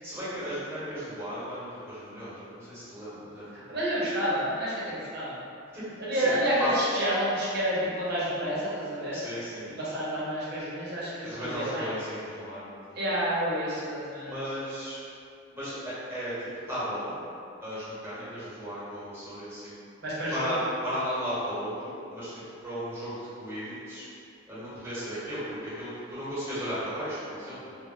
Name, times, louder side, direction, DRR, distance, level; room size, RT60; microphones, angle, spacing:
voice 1, 0.0-3.5 5.7-5.8 6.1-6.3 6.6-6.7 9.1-9.7 11.2-13.0 14.2-15.0 15.5-17.2 17.6-19.8 20.3-24.0 24.5-27.8, equal, 10° right, -13 dB, 1.1 m, -35 dB
voice 2, 3.5-5.4 6.0-9.2 9.8-11.9 12.9-14.3 20.0-20.6, equal, 55° right, -9 dB, 0.9 m, -29 dB
2.2 x 2.2 x 3.7 m, 2.5 s
head